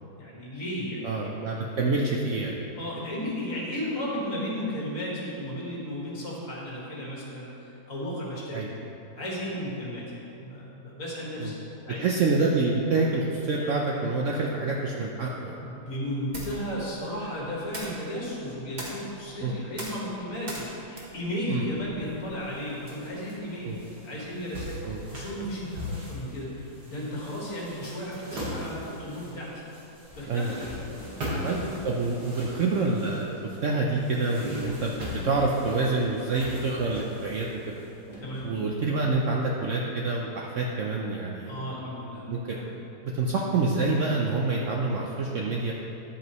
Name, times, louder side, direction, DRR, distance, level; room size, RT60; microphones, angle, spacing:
voice 1, 0.2-1.3 1.5-2.1 2.8-8.9 9.2-11.6 11.8-12.2 15.6-29.6 30.1-31.5 34.4-34.7 38.2-38.5 41.4-42.3 42.5-42.7 43.1-43.3, equal, 50° left, -5 dB, 2.1 m, -35 dB
voice 2, 1.0-2.6 8.5-8.7 11.4-11.5 12.0-15.6 19.4-19.5 21.5-21.6 23.6-23.8 24.8-25.0 30.3-30.6 31.4-33.3 33.6-34.9 35.2-37.5 38.4-41.5 42.3-42.6 43.1-45.7, right 3 dB, 65° right, -1 dB, 0.8 m, -27 dB
sound 1, 16.2-22.4, right 1 dB, 30° right, 1.2 m, -42 dB
sound 2, 21.7-39.2, left 1 dB, 80° right, 2.3 m, -40 dB
10.0 x 8.0 x 3.1 m, 2.9 s
omnidirectional pair, 1.8 m